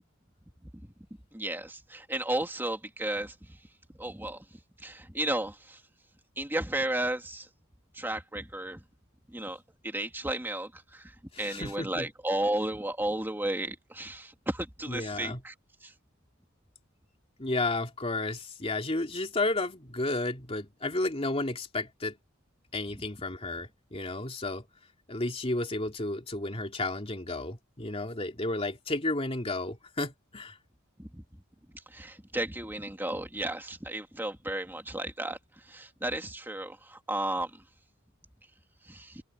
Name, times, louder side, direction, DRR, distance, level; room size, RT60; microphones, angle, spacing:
voice 1, 1.3-3.3 4.0-4.4 4.8-5.8 6.4-7.5 7.9-8.8 9.3-9.6 9.8-15.5 15.8-15.9 31.0-31.2 31.9-35.4 35.7-37.5 38.9-39.2, right 1 dB, 10° right, 2.3 m, -33 dB
voice 2, 11.3-12.1 14.9-15.4 17.4-22.2 22.7-24.7 25.1-30.6, left 2 dB, 30° left, 2.8 m, -32 dB
head